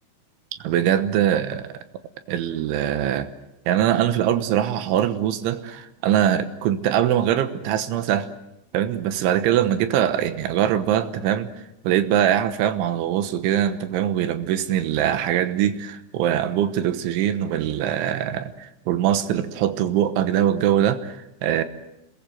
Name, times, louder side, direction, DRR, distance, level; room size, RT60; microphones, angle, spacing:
voice 1, 0.6-1.7 2.3-3.3 3.7-8.3 8.7-11.5 11.8-21.6, right 10 dB, 80° right, 10 dB, 3.5 m, -22 dB
28.0 x 21.0 x 7.8 m, 0.89 s
omnidirectional pair, 5.6 m